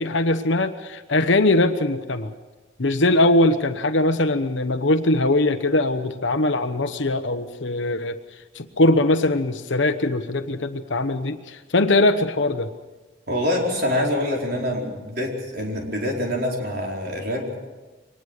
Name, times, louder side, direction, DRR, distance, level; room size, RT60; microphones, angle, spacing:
voice 1, 0.0-2.3 2.8-8.2 8.5-12.7, left 2 dB, 75° left, 8 dB, 1.1 m, -21 dB
voice 2, 13.3-17.7, left 1 dB, 55° right, 0 dB, 4.7 m, -25 dB
24.0 x 19.5 x 6.6 m, 1.2 s
head